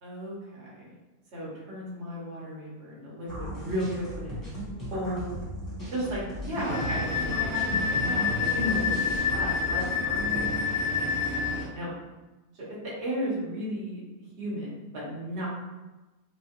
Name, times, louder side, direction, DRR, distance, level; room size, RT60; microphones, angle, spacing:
voice 1, 0.0-0.9 1.3-4.4 4.9-5.3 5.9-9.8 10.3-10.4 11.0-11.1 11.7-11.9 12.5-14.0 14.4-15.5, equal, 50° right, -6 dB, 1.3 m, -34 dB
sound 1, 3.3-10.5, equal, 15° left, 0.8 m, -36 dB
sound 2, 6.6-11.7, right 2 dB, 30° right, 1.4 m, -35 dB
Wind instrument woodwind instrument, 6.7-11.5, left 7 dB, 60° left, 0.8 m, -28 dB
3.8 x 2.4 x 2.9 m, 1.1 s
omnidirectional pair, 1.5 m